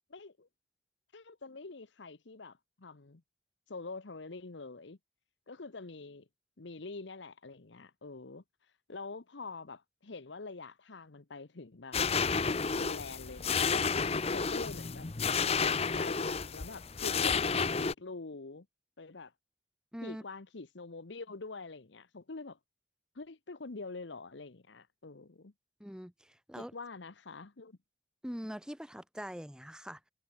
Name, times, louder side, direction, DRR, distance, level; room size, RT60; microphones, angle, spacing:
voice 1, 0.1-0.5 1.1-3.2 3.7-5.0 5.5-6.3 6.6-8.4 8.9-12.0 12.8-15.1 15.6-18.7 19.0-19.3 20.0-22.6 23.1-25.5 26.6-27.8, left 3 dB, 75° left, 1.0 m, -45 dB
sound 1, 11.9-17.9, left 5 dB, 35° left, 0.8 m, -31 dB
voice 2, 19.9-20.2 25.8-26.7 28.2-30.0, equal, 5° right, 1.5 m, -43 dB
head